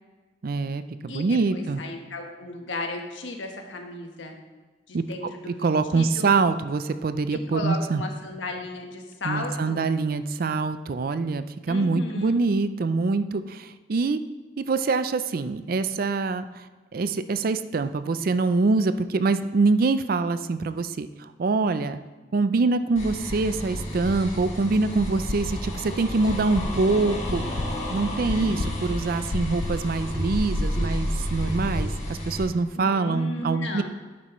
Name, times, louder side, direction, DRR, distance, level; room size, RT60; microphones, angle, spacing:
voice 1, 0.4-1.8 4.9-5.0 5.5-8.0 9.2-14.2 14.6-16.6 16.9-22.0 22.3-27.4 27.9-33.8, right 3 dB, 50° right, 12 dB, 0.4 m, -25 dB
voice 2, 1.5-4.3 4.9-5.7 5.9-6.3 7.3-9.9 11.7-12.4 32.7-33.8, left 2 dB, 75° left, 3 dB, 1.3 m, -35 dB
sound 1, 23.0-32.4, equal, 35° left, 2.3 m, -31 dB
sound 2, 25.3-25.9 26.3-30.9, left 3 dB, 55° left, 0.5 m, -33 dB
11.0 x 8.4 x 3.1 m, 1.3 s
head